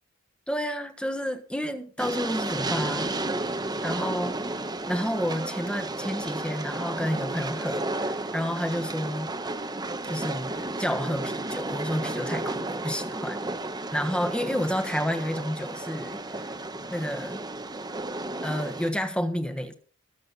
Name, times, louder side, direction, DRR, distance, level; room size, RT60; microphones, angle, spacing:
voice 1, 0.5-3.2 3.8-4.4 4.9-9.4 10.0-13.4 13.9-16.5 16.9-17.4 18.4-19.7, equal, 5° left, 1.4 m, -30 dB
Train, 2.0-18.9, right 2 dB, 20° right, 1.0 m, -33 dB
22.0 x 7.9 x 4.1 m
head